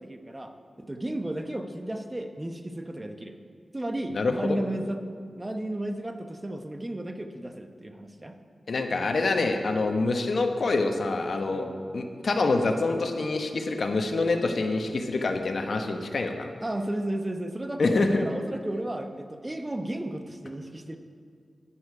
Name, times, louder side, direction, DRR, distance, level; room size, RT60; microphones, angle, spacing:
voice 1, 0.0-3.4 3.7-8.4 11.5-11.9 16.6-21.0, right 1 dB, 25° right, 6 dB, 1.0 m, -34 dB
voice 2, 4.1-4.6 8.7-11.7 11.9-16.5 17.8-18.2, left 3 dB, 70° left, 5 dB, 1.0 m, -26 dB
11.0 x 10.0 x 4.9 m, 2.1 s
cardioid pair, 50°, 0 cm